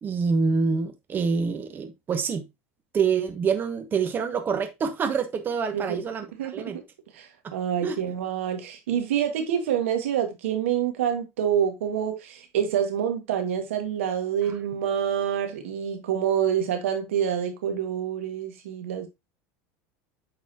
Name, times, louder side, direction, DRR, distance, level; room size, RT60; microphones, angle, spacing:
voice 1, 0.0-2.4 2.9-6.8 7.4-7.5 7.8-8.0 14.5-14.6, right 5 dB, 30° right, 1.1 m, -26 dB
voice 2, 7.1-19.1, right 9 dB, 85° right, 1.8 m, -27 dB
8.3 x 4.1 x 2.8 m
supercardioid pair, 110°, 7 cm